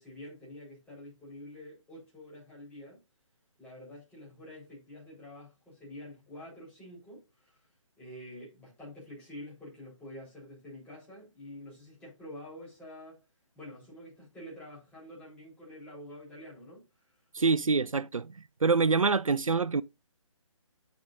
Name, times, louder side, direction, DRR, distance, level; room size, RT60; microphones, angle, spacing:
voice 1, 0.0-3.0 3.6-7.6 8.0-13.2 13.5-16.8, left 1 dB, 5° left, 4.2 m, -47 dB
voice 2, 17.3-18.3 18.6-19.8, right 4 dB, 80° right, 0.4 m, -25 dB
10.0 x 6.7 x 2.6 m
figure-of-eight pair, 145°, 17 cm